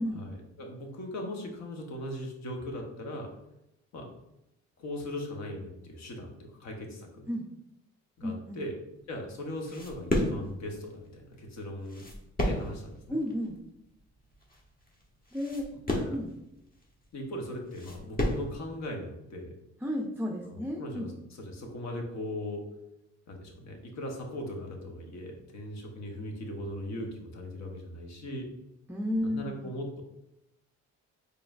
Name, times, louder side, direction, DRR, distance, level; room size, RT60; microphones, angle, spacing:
voice 1, 0.1-3.3 3.9-4.1 4.8-7.3 8.2-8.8 9.1-12.1 12.4-13.2 15.9-16.2 17.1-19.5 20.4-21.1 21.4-22.7 23.3-28.5 29.2-30.0, left 1 dB, 65° left, 2 dB, 1.0 m, -39 dB
voice 2, 8.2-8.6 13.1-13.6 15.3-15.7 16.1-16.3 19.8-21.1 28.9-29.7, left 1 dB, 5° right, 0 dB, 0.4 m, -32 dB
sound 1, 9.0-18.6, left 1 dB, 30° left, 1.0 m, -33 dB
4.9 x 3.1 x 2.5 m, 0.87 s
cardioid pair, 90°, 30 cm